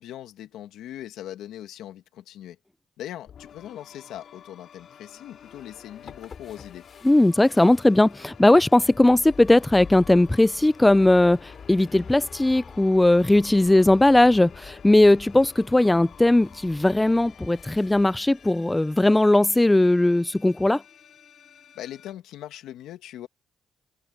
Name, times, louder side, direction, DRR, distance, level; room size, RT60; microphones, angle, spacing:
voice 1, 0.0-2.6 3.0-6.9 21.7-23.3, left 12 dB, 85° left, 2.0 m, -40 dB
sound 1, 3.3-22.1, left 8 dB, 60° left, 3.8 m, -51 dB
sound 2, 5.4-19.2, left 6 dB, 45° left, 7.7 m, -47 dB
voice 2, 7.0-20.8, left 1 dB, 10° left, 0.3 m, -18 dB
cardioid pair, 90°, 0 cm